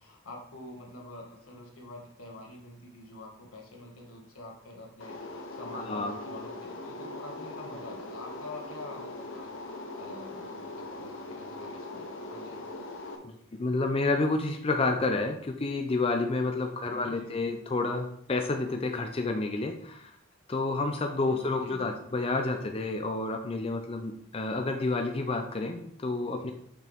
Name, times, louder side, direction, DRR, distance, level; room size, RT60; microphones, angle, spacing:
voice 1, 0.0-12.6 16.7-17.5 21.2-22.0, left 1 dB, 85° left, -1 dB, 1.8 m, -46 dB
sound 1, 5.0-13.2, left 2 dB, 60° left, 1.0 m, -41 dB
voice 2, 5.9-6.2 13.2-20.1 20.5-26.5, left 3 dB, 25° left, 4 dB, 0.5 m, -30 dB
6.1 x 5.7 x 3.5 m, 0.68 s
head